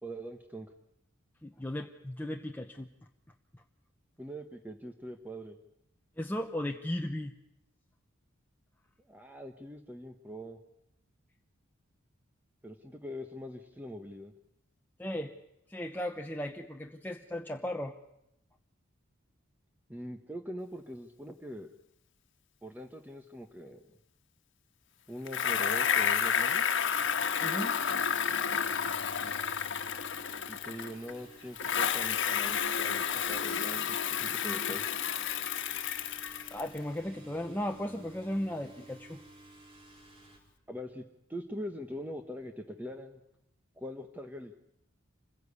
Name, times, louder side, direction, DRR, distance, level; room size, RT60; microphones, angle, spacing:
voice 1, 0.0-0.7 4.2-5.6 9.1-10.6 12.6-14.3 19.9-21.7 22.6-23.8 25.1-26.6 30.5-34.9 40.7-41.0 41.3-43.2 43.8-44.6, equal, 10° right, 5 dB, 1.1 m, -42 dB
voice 2, 1.4-2.9 6.2-7.3 15.0-15.3 15.7-18.0 27.4-27.7 36.5-39.2, left 1 dB, 10° left, 3 dB, 0.9 m, -36 dB
Bicycle, 25.3-31.1 31.6-36.8, left 7 dB, 65° left, 1.4 m, -31 dB
sound 1, 26.9-40.4, right 1 dB, 30° right, 4.3 m, -54 dB
26.0 x 16.0 x 8.4 m, 0.81 s
head